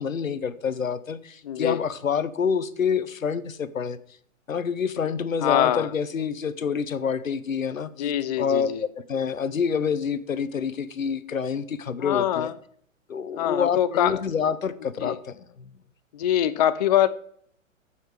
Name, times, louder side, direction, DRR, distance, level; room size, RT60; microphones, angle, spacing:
voice 1, 0.0-4.0 4.5-8.1 8.4-8.7 9.0-12.5 13.1-15.7, left 6 dB, 75° left, 0.8 m, -27 dB
voice 2, 1.4-1.8 5.4-5.9 8.0-8.8 12.0-12.5 13.4-14.2 15.0-15.2 16.1-17.1, left 11 dB, 35° left, 0.4 m, -23 dB
14.0 x 5.8 x 4.7 m
figure-of-eight pair, 110°, 40 cm